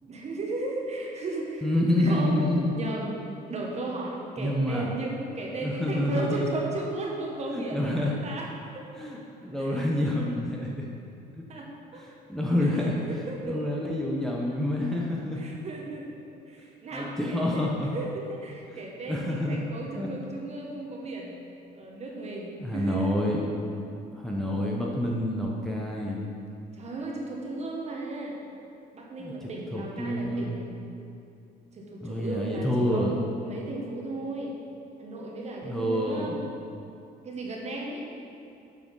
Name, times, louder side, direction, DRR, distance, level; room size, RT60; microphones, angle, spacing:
voice 1, 0.0-1.7 2.0-2.5 2.7-3.1 3.5-8.5 8.7-8.9 9.7-9.8 11.5-11.7 11.9-12.0 12.8-12.9 13.3-13.8 15.4-16.2 16.5-21.4 21.7-23.2 26.7-28.4 28.9-30.7 31.7-34.5 35.0-36.4 37.2-38.0, right 2 dB, 40° right, -2 dB, 1.5 m, -35 dB
voice 2, 1.6-2.7 4.4-4.9 5.6-6.5 7.5-8.1 9.0-10.9 11.4-11.5 11.9-13.0 13.4-15.4 16.9-17.9 19.1-19.6 19.9-20.1 22.6-23.4 23.8-23.9 24.1-26.2 29.2-30.6 32.0-33.2 35.6-36.4, left 1 dB, ahead, -3 dB, 0.9 m, -28 dB
7.8 x 5.0 x 5.4 m, 2.6 s
cardioid pair, 110°, 17 cm